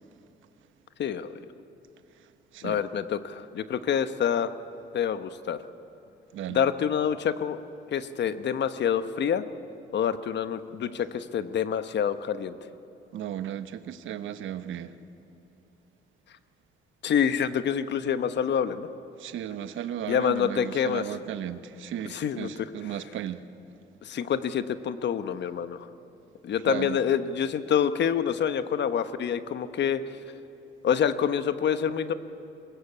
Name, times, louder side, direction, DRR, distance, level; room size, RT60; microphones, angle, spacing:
voice 1, 1.0-1.4 2.6-4.5 4.9-5.6 6.5-7.6 7.9-9.4 9.9-12.6 17.0-18.9 20.1-21.0 22.1-22.7 24.0-25.9 26.4-30.0 30.8-32.1, left 8 dB, 60° left, 1.1 m, -27 dB
voice 2, 13.1-14.9 19.2-23.5 26.6-27.0, right 10 dB, 80° right, 1.0 m, -35 dB
22.0 x 20.5 x 8.4 m
cardioid pair, 90°, 20 cm